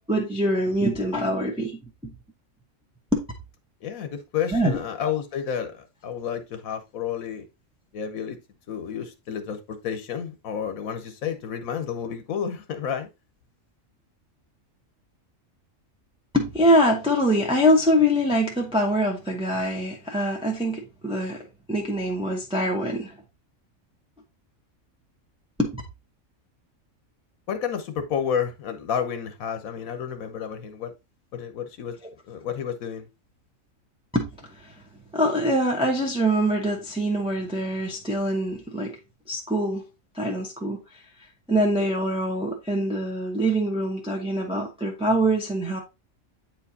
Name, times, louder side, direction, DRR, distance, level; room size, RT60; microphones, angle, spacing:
voice 1, 0.1-2.1 3.1-3.2 4.5-4.8 16.3-23.1 25.6-25.8 34.1-34.7 35.1-39.0 39.3-39.8 40.1-40.8 41.5-45.8, equal, 5° right, 0.9 m, -24 dB
voice 2, 3.8-7.5 7.9-8.4 8.7-13.1 27.5-30.9 31.3-32.0 32.3-33.1, left 8 dB, 90° left, 1.3 m, -30 dB
8.5 x 4.5 x 2.7 m
omnidirectional pair, 1.4 m